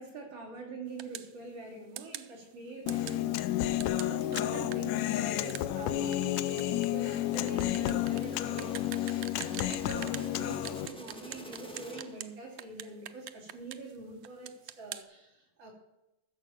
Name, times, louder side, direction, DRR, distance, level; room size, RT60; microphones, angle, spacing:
voice 1, 0.0-15.7, right 3 dB, 55° right, -2 dB, 4.0 m, -45 dB
sound 1, 1.0-1.3 2.0-2.3 2.9-3.2 3.8-10.3 10.6-12.3 12.6-14.0 14.2-15.0, right 13 dB, 85° right, 1.3 m, -43 dB
Human voice, 2.9-10.9, left 13 dB, 80° left, 1.8 m, -31 dB
sound 2, 5.5-12.4, equal, 5° left, 0.6 m, -50 dB
15.0 x 7.0 x 5.8 m, 0.93 s
omnidirectional pair, 3.4 m